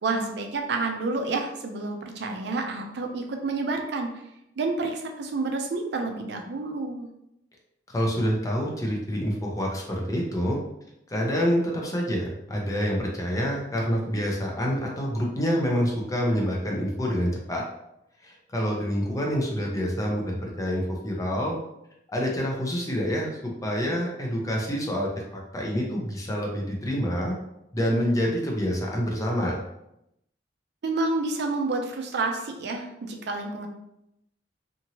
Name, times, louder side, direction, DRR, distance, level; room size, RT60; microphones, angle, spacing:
voice 1, 0.0-4.1 4.6-7.1 30.8-33.7, right 3 dB, 65° right, 3 dB, 0.4 m, -29 dB
voice 2, 7.9-10.6 11.1-17.6 18.2-21.6 22.1-25.1 25.5-27.3 27.7-29.6, equal, 20° left, -1 dB, 0.6 m, -27 dB
2.9 x 2.6 x 2.8 m, 0.83 s
head